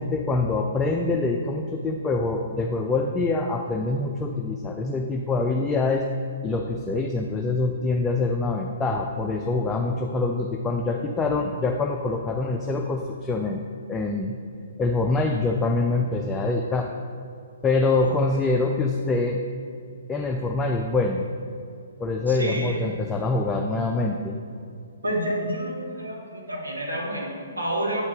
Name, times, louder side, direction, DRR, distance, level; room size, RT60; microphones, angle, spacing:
voice 1, 0.0-6.1 6.4-14.4 14.8-16.9 17.6-19.4 20.1-21.3 22.0-24.4, left 3 dB, 10° left, 2 dB, 0.3 m, -25 dB
voice 2, 18.0-18.4 22.3-22.9 25.0-28.0, right 1 dB, 85° right, -2 dB, 1.4 m, -29 dB
7.6 x 3.9 x 3.7 m, 2.4 s
figure-of-eight pair, 125°, 0 cm